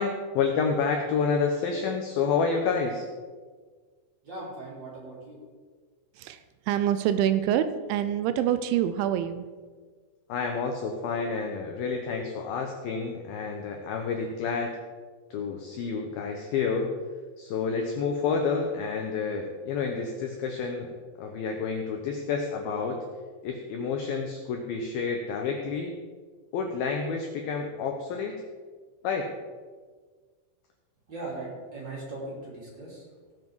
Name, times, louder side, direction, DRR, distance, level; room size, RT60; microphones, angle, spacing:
voice 1, 0.0-3.0 10.3-14.7 15.3-16.9 17.4-20.9 21.2-23.0 23.4-25.9 26.5-28.3 29.0-29.3, left 5 dB, 80° left, 2 dB, 2.2 m, -29 dB
voice 2, 4.2-5.4 31.1-33.1, right 2 dB, 30° right, -4 dB, 2.8 m, -39 dB
voice 3, 6.2-9.5, right 10 dB, 85° right, 11 dB, 2.9 m, -26 dB
17.0 x 7.4 x 4.7 m, 1.5 s
omnidirectional pair, 5.5 m